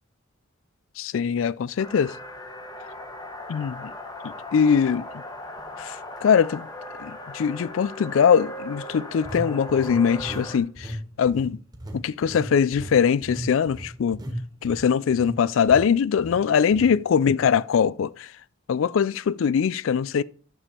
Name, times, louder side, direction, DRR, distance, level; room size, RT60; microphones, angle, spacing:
voice 1, 1.0-2.1 3.5-3.9 4.2-5.2 5.8-6.7 7.0-11.6 11.9-14.2 14.6-18.3 18.7-20.2, left 7 dB, 70° left, 0.3 m, -22 dB
sound 1, 1.8-10.6, left 1 dB, 20° left, 1.1 m, -38 dB
sound 2, 4.8-4.9 5.5-5.7 9.2-10.5 10.8-11.0 11.3-15.4 15.7-15.9 16.2-16.4 16.7-16.9, right 1 dB, 20° right, 1.5 m, -36 dB
10.0 x 7.0 x 4.3 m
head